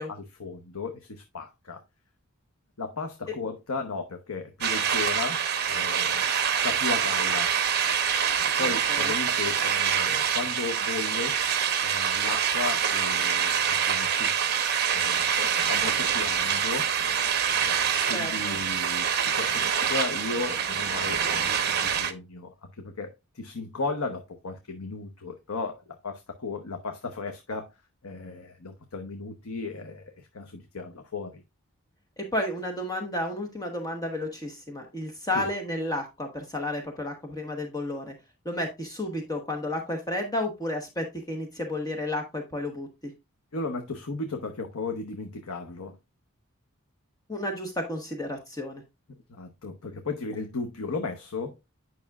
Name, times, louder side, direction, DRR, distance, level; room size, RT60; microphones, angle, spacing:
voice 1, 0.1-1.8 2.8-6.2 6.5-7.6 8.4-11.4 11.8-14.3 14.9-16.9 17.5-23.1 23.3-27.7 28.0-31.4 35.3-35.5 43.5-46.0 49.3-51.6, left 3 dB, 80° left, 0.9 m, -35 dB
sound 1, 4.6-22.1, right 8 dB, 45° right, 0.8 m, -26 dB
voice 2, 8.6-9.1 18.1-18.6 32.2-38.1 38.4-43.1 47.3-48.8, left 1 dB, 15° left, 1.1 m, -32 dB
9.4 x 5.8 x 2.3 m
head